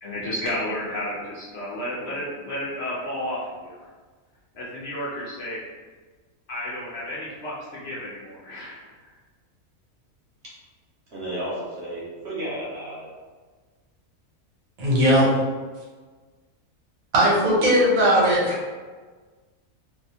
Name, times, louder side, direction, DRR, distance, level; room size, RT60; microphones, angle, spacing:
voice 1, 0.0-3.9 4.5-5.6 6.5-9.1, left 1 dB, 60° left, -7 dB, 0.7 m, -32 dB
voice 2, 11.1-13.1, right 1 dB, 55° right, -6 dB, 1.0 m, -33 dB
voice 3, 14.8-15.3 17.1-18.5, equal, 75° right, -5 dB, 1.2 m, -18 dB
2.7 x 2.1 x 2.7 m, 1.4 s
omnidirectional pair, 1.5 m